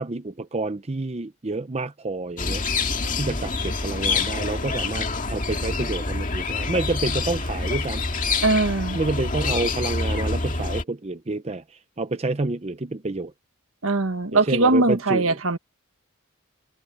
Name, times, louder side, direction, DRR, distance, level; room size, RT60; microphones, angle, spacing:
voice 1, 0.0-2.6 3.2-8.0 8.9-13.3 14.3-15.4, right 2 dB, 30° right, 0.7 m, -28 dB
sound 1, 2.4-10.8, left 3 dB, 40° left, 2.1 m, -26 dB
voice 2, 8.4-9.0 13.8-15.6, right 2 dB, 70° right, 1.5 m, -21 dB
head